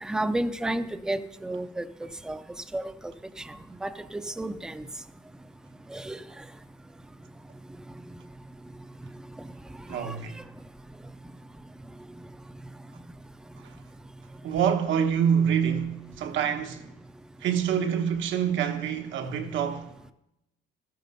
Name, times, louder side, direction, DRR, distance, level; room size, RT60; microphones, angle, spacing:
voice 1, 0.0-1.8 2.3-2.4 2.7-2.8 3.5-3.6 3.8-4.8 5.9-6.2 9.9-10.1, right 1 dB, 5° right, 0.4 m, -31 dB
voice 2, 9.9-10.4 13.6-13.7 14.4-16.9 17.4-20.1, right 8 dB, 80° right, 1.2 m, -26 dB
13.5 x 9.3 x 5.5 m
cardioid pair, 170°, 19 cm